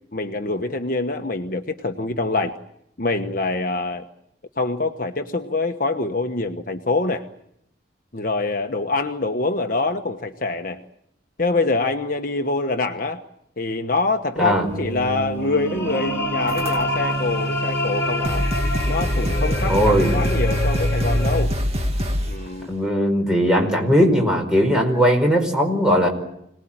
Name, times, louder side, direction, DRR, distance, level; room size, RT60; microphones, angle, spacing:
voice 1, 0.1-2.5 3.0-4.1 4.6-7.3 8.1-10.8 11.4-13.2 13.6-18.5 18.9-21.5 22.3-22.7, left 3 dB, 45° left, 4 dB, 1.2 m, -25 dB
sound 1, 14.4-21.4, equal, 15° left, 4.2 m, -26 dB
sound 2, 16.5-17.1 17.9-18.0 18.2-22.4, equal, 35° right, 2.3 m, -24 dB
voice 2, 19.7-20.1 22.7-26.1, equal, 5° right, 1 dB, 5.1 m, -18 dB
26.5 x 19.5 x 8.8 m, 0.77 s
head